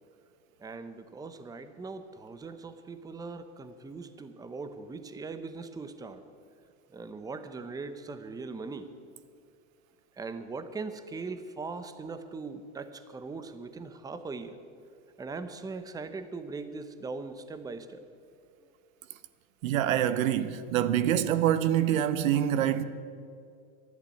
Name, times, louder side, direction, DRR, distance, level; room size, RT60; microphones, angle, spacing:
voice 1, 0.6-6.2 6.9-8.9 10.2-14.6 15.2-18.0, right 4 dB, 10° right, 0.7 m, -40 dB
voice 2, 19.6-22.8, right 11 dB, 85° right, 1.0 m, -25 dB
12.0 x 10.5 x 9.7 m
supercardioid pair, 120°, 39 cm